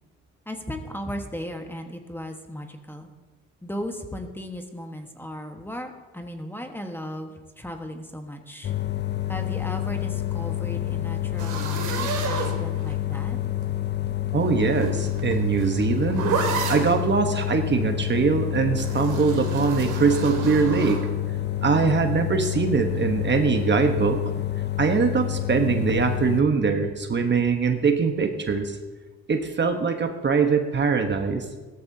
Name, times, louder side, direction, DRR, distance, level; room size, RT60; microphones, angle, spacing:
voice 1, 0.4-3.1 3.6-8.7 9.3-13.4, equal, 5° left, 4 dB, 1.3 m, -36 dB
sound 1, 8.6-26.4, left 13 dB, 35° left, 0.5 m, -28 dB
sound 2, 11.4-13.1 14.3-17.0 18.8-21.0, right 5 dB, 85° right, 2.1 m, -30 dB
voice 2, 14.3-16.3 16.7-21.1 21.6-24.2 24.8-28.8 29.3-31.4, right 5 dB, 35° right, 6 dB, 1.1 m, -22 dB
16.5 x 13.5 x 2.8 m, 1.3 s
cardioid pair, 90°, 30 cm